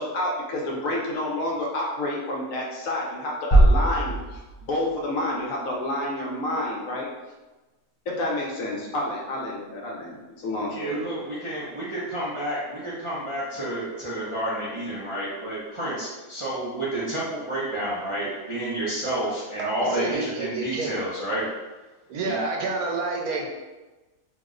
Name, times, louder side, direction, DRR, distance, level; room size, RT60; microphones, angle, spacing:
voice 1, 0.0-4.4 4.7-7.1 8.1-11.1, left 1 dB, 70° left, -2 dB, 1.0 m, -29 dB
sound 1, 3.5-5.3, right 1 dB, 50° left, 0.5 m, -20 dB
voice 2, 10.7-21.5 22.2-22.4, right 1 dB, 45° right, -9 dB, 0.4 m, -30 dB
voice 3, 19.6-20.9 22.1-23.5, right 3 dB, 90° right, 0 dB, 1.1 m, -29 dB
2.9 x 2.0 x 3.6 m, 1.1 s
omnidirectional pair, 1.5 m